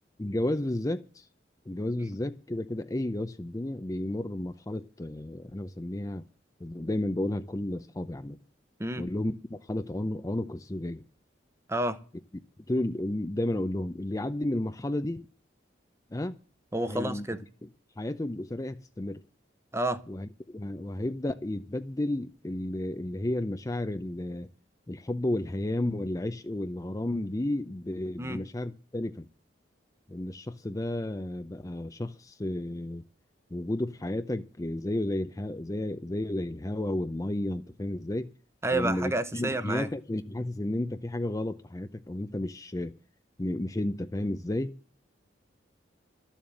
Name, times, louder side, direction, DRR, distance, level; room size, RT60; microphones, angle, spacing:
voice 1, 0.2-1.3 1.7-6.3 6.6-8.4 9.0-11.0 12.7-15.3 16.1-16.4 16.9-17.3 17.6-17.7 18.0-19.2 20.1-24.5 24.9-29.3 30.1-33.0 33.5-38.3 38.7-42.9 43.4-44.8, left 1 dB, 20° left, 0.6 m, -32 dB
voice 2, 11.7-12.0 16.7-17.4 19.7-20.0 28.2-28.4 38.6-39.9, right 2 dB, 15° right, 0.9 m, -29 dB
12.5 x 7.2 x 8.9 m
head